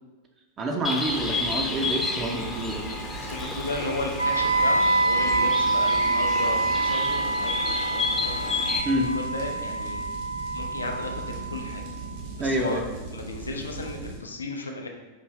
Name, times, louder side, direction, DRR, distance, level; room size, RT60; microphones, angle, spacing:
voice 1, 0.6-2.8 8.8-9.1 12.4-12.8, right 1 dB, 25° right, 2 dB, 0.5 m, -27 dB
Bird, 0.8-8.8, left 3 dB, 20° left, 0.6 m, -31 dB
sound 1, 1.0-14.2, right 3 dB, 55° right, 1.2 m, -39 dB
voice 2, 2.9-8.5 8.9-10.0 10.5-11.8 12.4-12.8 13.1-14.9, left 3 dB, 80° left, 3 dB, 0.5 m, -34 dB
Wind instrument woodwind instrument, 4.2-12.1, right 3 dB, 85° right, 0.4 m, -26 dB
4.9 x 2.6 x 3.1 m, 1.2 s
figure-of-eight pair, 90°, 0 cm